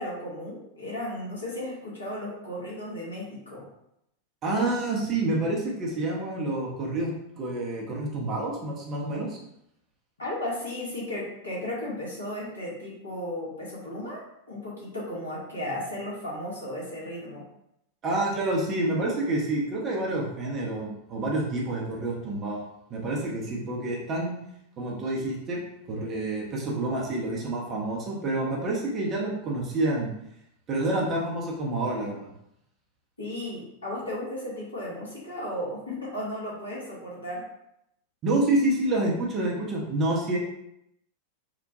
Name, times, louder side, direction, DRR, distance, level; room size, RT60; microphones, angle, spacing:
voice 1, 0.0-3.7 10.2-17.4 33.2-37.4, left 1 dB, 75° left, -5 dB, 1.0 m, -35 dB
voice 2, 4.4-7.1 7.4-9.4 18.0-24.3 24.8-25.6 25.9-30.1 30.7-32.3 38.2-40.4, right 2 dB, 30° right, -3 dB, 0.7 m, -28 dB
2.9 x 2.1 x 2.6 m, 0.80 s
figure-of-eight pair, 90°, 0 cm